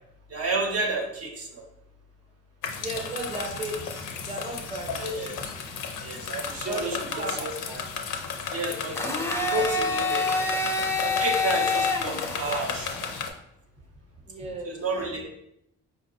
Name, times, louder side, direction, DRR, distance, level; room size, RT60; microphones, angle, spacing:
voice 1, 0.3-1.6 5.0-5.3 6.0-7.8 8.5-10.3 11.0-13.1 14.6-15.3, right 2 dB, 55° right, 2 dB, 0.7 m, -31 dB
sound 1, 2.6-13.3, left 5 dB, 80° left, 0.5 m, -34 dB
voice 2, 2.8-5.0 6.7-7.5 8.4-8.5 14.3-14.7, right 2 dB, 20° right, 2 dB, 0.7 m, -35 dB
Domestic sounds home sounds, 9.0-13.0, left 3 dB, 10° left, 0.4 m, -27 dB
4.5 x 2.2 x 2.7 m, 0.80 s
cardioid pair, 90°, 30 cm